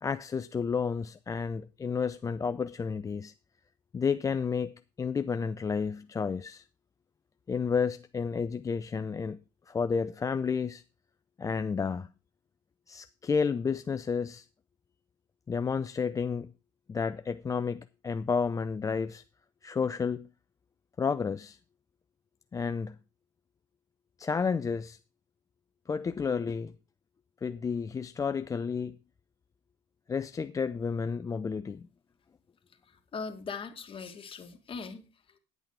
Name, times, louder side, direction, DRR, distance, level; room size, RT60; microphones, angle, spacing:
voice 1, 0.0-3.3 3.9-6.6 7.5-9.4 9.7-10.8 11.4-12.1 12.9-14.5 15.5-16.5 16.9-19.2 19.6-20.3 21.0-21.6 22.5-23.0 24.2-25.0 25.9-26.7 27.4-29.0 30.1-31.9, left 5 dB, 20° left, 0.4 m, -31 dB
voice 2, 32.9-35.4, left 5 dB, 35° left, 2.0 m, -41 dB
10.5 x 8.2 x 4.8 m
supercardioid pair, 80°, 15 cm